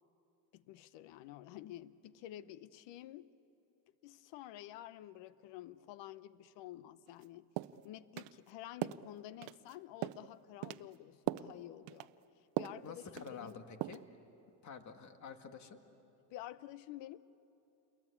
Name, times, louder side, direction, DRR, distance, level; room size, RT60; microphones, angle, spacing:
voice 1, 0.5-3.3 4.0-7.5 7.8-12.1 12.4-13.6 16.3-17.2, left 13 dB, 60° left, 16 dB, 0.9 m, -50 dB
sound 1, 7.1-7.2 7.6-7.8 8.2-8.3 8.8-9.0 9.4-9.7 10.0-10.3 10.6-10.9 11.3-11.5 11.9-12.1 12.6-12.8 13.2-13.5 13.8-14.1, right 17 dB, 65° right, 0.7 m, -39 dB
voice 2, 12.8-14.0 14.6-15.8, left 6 dB, 35° left, 7 dB, 2.0 m, -49 dB
29.0 x 22.5 x 8.5 m, 3.0 s
cardioid pair, 115°, 48 cm